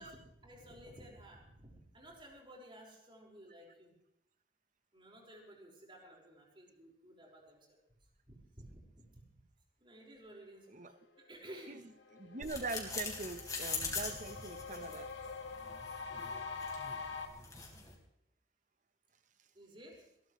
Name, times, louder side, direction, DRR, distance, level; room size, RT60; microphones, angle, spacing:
voice 1, 0.0-3.9 4.9-7.8 8.3-8.8 9.1-9.3 9.8-11.8 13.8-14.2 19.5-20.1, right 1 dB, 30° right, -2 dB, 5.6 m, -54 dB
sound 1, 11.5-11.6 11.9-17.3, left 4 dB, 85° left, 2.0 m, -45 dB
voice 2, 12.1-15.1, right 3 dB, 45° right, 10 dB, 1.1 m, -43 dB
sound 2, 12.4-17.9, left 4 dB, 20° left, 4.1 m, -43 dB
21.5 x 19.0 x 3.3 m, 0.79 s
head